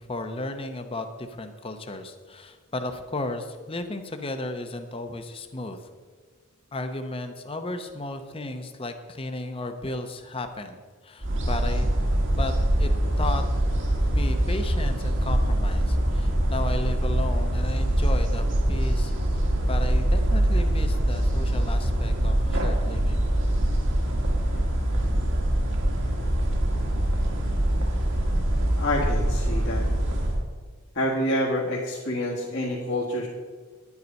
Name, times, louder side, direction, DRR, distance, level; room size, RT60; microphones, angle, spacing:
voice 1, 0.0-5.8 6.7-11.9 12.3-12.9 13.2-13.4 14.1-23.2, left 2 dB, 25° left, 7 dB, 0.8 m, -34 dB
sound 1, 11.2-30.4, right 1 dB, 55° right, 1.7 m, -24 dB
voice 2, 28.8-29.9 30.9-33.3, left 1 dB, 50° left, -5 dB, 1.6 m, -27 dB
10.5 x 9.6 x 5.3 m, 1.5 s
head